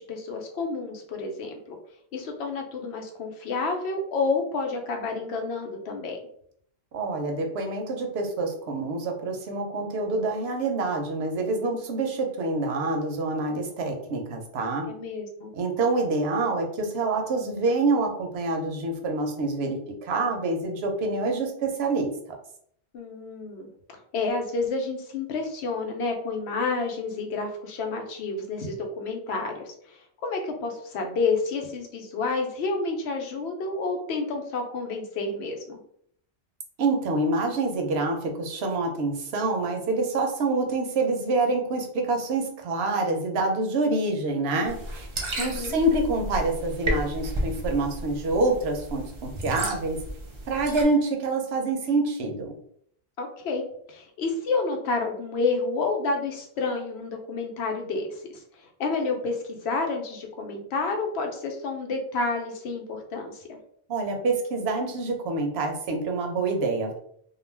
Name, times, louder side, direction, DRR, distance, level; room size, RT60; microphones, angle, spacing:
voice 1, 0.0-1.8 2.1-6.2 14.9-15.5 22.9-23.7 24.1-35.8 45.4-45.8 53.2-58.4 58.8-63.6, left 3 dB, 85° left, 3 dB, 0.9 m, -29 dB
voice 2, 6.9-14.9 15.5-22.1 36.8-45.1 45.4-50.0 50.5-52.6 63.9-67.0, right 3 dB, 80° right, 3 dB, 0.9 m, -26 dB
sound 1, 44.6-50.8, right 1 dB, 45° right, 0.4 m, -33 dB
2.3 x 2.2 x 3.2 m, 0.66 s
omnidirectional pair, 1.1 m